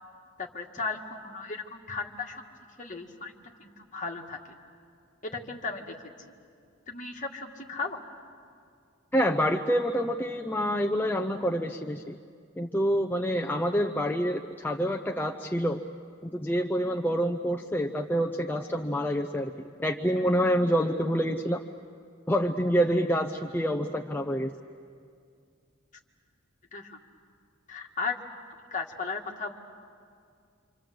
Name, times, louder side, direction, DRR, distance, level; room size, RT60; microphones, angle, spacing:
voice 1, 0.4-2.4 2.8-3.3 3.6-4.6 5.2-5.9 6.9-8.0 22.9-23.1 26.7-27.0 27.7-28.2 28.7-29.6, left 4 dB, 40° left, 1 dB, 2.0 m, -36 dB
voice 2, 9.1-12.2 12.6-15.8 16.3-19.5 19.8-21.6 22.3-24.5, equal, 10° left, 2 dB, 0.6 m, -27 dB
27.0 x 26.5 x 7.7 m, 2.3 s
head